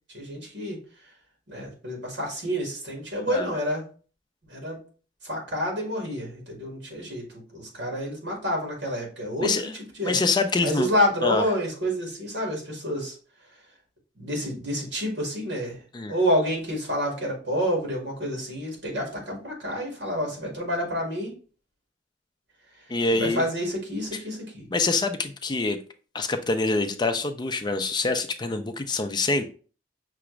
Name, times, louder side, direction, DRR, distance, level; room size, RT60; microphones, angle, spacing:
voice 1, 0.1-0.8 1.5-3.8 4.5-4.8 5.2-7.2 7.5-9.5 10.0-10.2 10.6-13.1 14.2-15.8 16.1-21.3 23.1-24.7, equal, 65° right, 1.8 m, -28 dB
voice 2, 10.0-10.9 11.2-11.4 15.9-16.2 22.9-23.4 24.7-25.8 26.1-29.4, left 3 dB, 25° left, 0.4 m, -25 dB
5.9 x 2.4 x 3.1 m
head